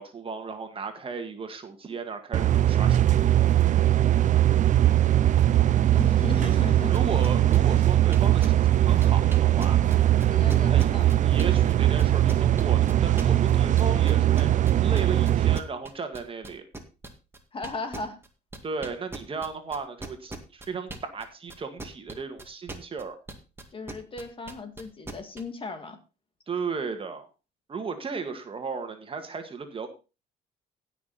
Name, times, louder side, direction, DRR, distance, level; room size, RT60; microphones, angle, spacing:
voice 1, 0.0-3.3 6.9-9.9 10.7-16.6 18.6-23.2 26.5-27.3 27.7-29.9, right 5 dB, 30° right, 6 dB, 1.9 m, -35 dB
sound 1, 2.3-15.6, right 12 dB, 50° right, 0.6 m, -21 dB
voice 2, 5.9-6.9 10.3-11.1 17.5-18.2 23.7-26.0, left 3 dB, 30° left, 7 dB, 2.3 m, -36 dB
sound 2, 6.9-11.7 12.0-21.2 21.5-25.4, right 2 dB, 15° right, 2.1 m, -40 dB
16.5 x 6.2 x 4.2 m, 0.31 s
cardioid pair, 110°, 17 cm